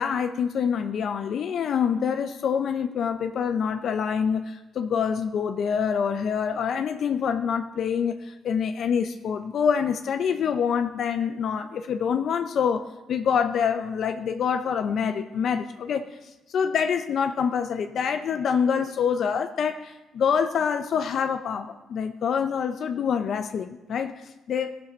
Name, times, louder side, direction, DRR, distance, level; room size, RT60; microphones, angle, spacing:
voice 1, 0.0-16.1 16.5-24.8, left 7 dB, 65° left, 8 dB, 0.5 m, -26 dB
14.5 x 6.4 x 4.2 m, 1.1 s
cardioid pair, 90°, 0 cm